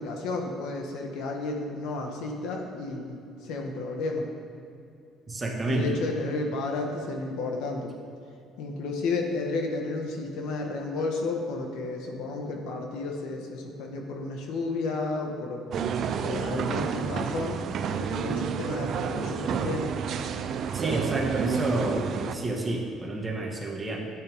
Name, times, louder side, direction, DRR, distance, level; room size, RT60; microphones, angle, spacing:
voice 1, 0.0-4.3 5.6-7.9 8.6-15.6 16.2-17.6 18.0-19.9, left 3 dB, 80° left, 2 dB, 1.5 m, -32 dB
voice 2, 5.3-5.8 20.7-24.0, right 2 dB, 20° right, -1 dB, 1.6 m, -29 dB
sound 1, 15.7-22.3, right 6 dB, 50° right, 0.5 m, -30 dB
12.5 x 9.1 x 3.6 m, 2.6 s
cardioid pair, 135°, 0 cm